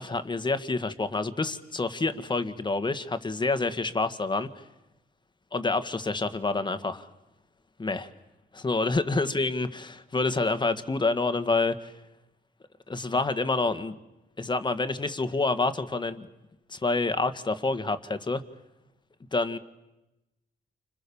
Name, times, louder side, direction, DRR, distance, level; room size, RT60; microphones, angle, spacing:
voice 1, 0.0-4.5 5.5-7.1 7.8-8.1 8.5-11.9 12.9-13.9 14.4-16.3 16.7-18.4 19.3-19.6, left 3 dB, 20° left, 11 dB, 1.8 m, -28 dB
30.0 x 26.0 x 7.2 m, 0.98 s
cardioid pair, 90°, 20 cm